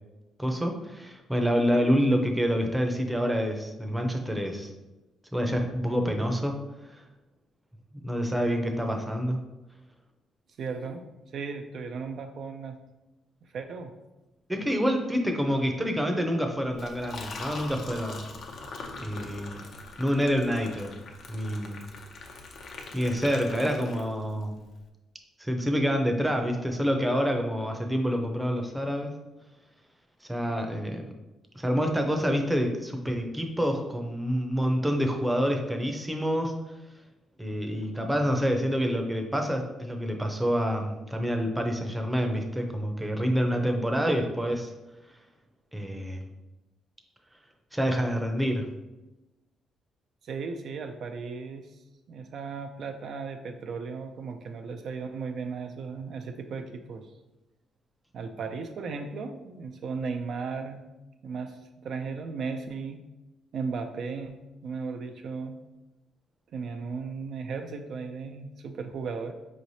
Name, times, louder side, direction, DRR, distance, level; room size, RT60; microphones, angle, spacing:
voice 1, 0.4-4.7 5.3-6.6 6.9-7.0 7.9-9.4 14.5-18.3 19.0-19.6 20.0-20.9 21.3-21.8 22.9-24.6 25.4-29.2 30.3-31.0 31.5-36.6 37.4-44.7 45.7-46.2 47.7-48.7, equal, 10° right, 3 dB, 0.6 m, -27 dB
voice 2, 10.6-11.0 11.3-12.8 13.5-13.9 50.2-51.8 52.1-57.1 58.1-60.8 61.2-63.0 63.5-64.4 64.6-65.6 66.5-69.3, right 5 dB, 65° right, 5 dB, 0.3 m, -36 dB
Liquid, 16.7-24.4, left 3 dB, 65° left, 0.5 m, -42 dB
4.8 x 3.1 x 2.7 m, 1.0 s
cardioid pair, 90°, 0 cm